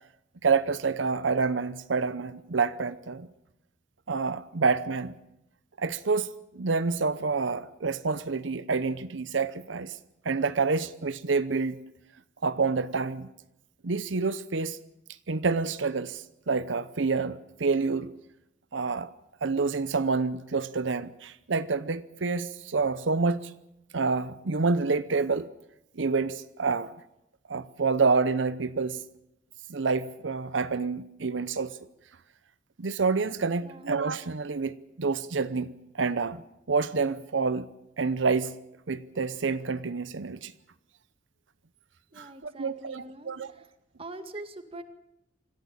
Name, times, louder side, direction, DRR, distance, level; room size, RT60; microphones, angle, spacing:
voice 1, 0.4-3.3 4.1-5.1 5.8-10.0 10.2-11.8 12.4-13.3 13.8-14.8 15.3-18.1 18.7-19.1 19.4-23.5 23.9-25.5 26.0-26.9 27.5-29.0 29.7-31.8 32.8-36.4 36.7-37.7 38.0-38.5 38.9-40.5 42.2-43.5, right 4 dB, 85° right, 0.8 m, -28 dB
voice 2, 33.5-33.9 42.1-43.3 44.0-44.8, right 1 dB, 30° right, 1.9 m, -43 dB
25.5 x 14.5 x 8.9 m
head